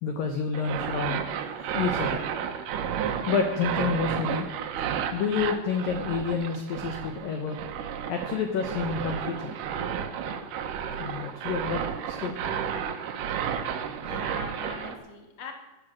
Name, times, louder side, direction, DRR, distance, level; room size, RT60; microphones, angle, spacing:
voice 1, 0.0-1.3 1.7-2.2 3.3-4.5 5.1-7.6 8.1-9.6 11.0-12.4, left 5 dB, 65° left, 5 dB, 2.3 m, -29 dB
sound 1, 0.5-15.0, right 8 dB, 90° right, 1.8 m, -32 dB
voice 2, 14.0-15.5, left 5 dB, 35° left, 3 dB, 2.0 m, -42 dB
15.0 x 10.5 x 7.6 m, 1.1 s
omnidirectional pair, 5.5 m